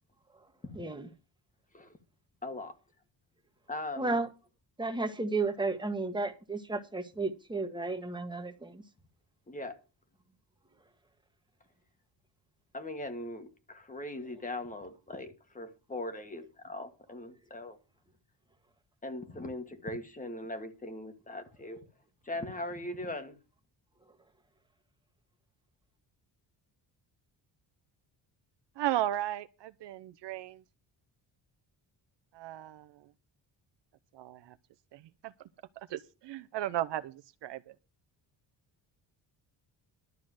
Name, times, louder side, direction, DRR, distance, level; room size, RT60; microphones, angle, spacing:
voice 1, 0.7-1.1 4.0-4.3 4.8-8.8, right 3 dB, 10° right, 1.5 m, -33 dB
voice 2, 2.4-2.8 3.7-4.2 9.5-9.8 12.7-17.8 19.0-21.8 22.2-23.4, left 2 dB, 20° left, 1.6 m, -40 dB
voice 3, 28.8-30.6 32.3-33.1 34.1-34.6 34.9-35.5 35.8-37.8, right 13 dB, 70° right, 0.9 m, -36 dB
12.5 x 6.4 x 7.7 m
cardioid pair, 175°, 43 cm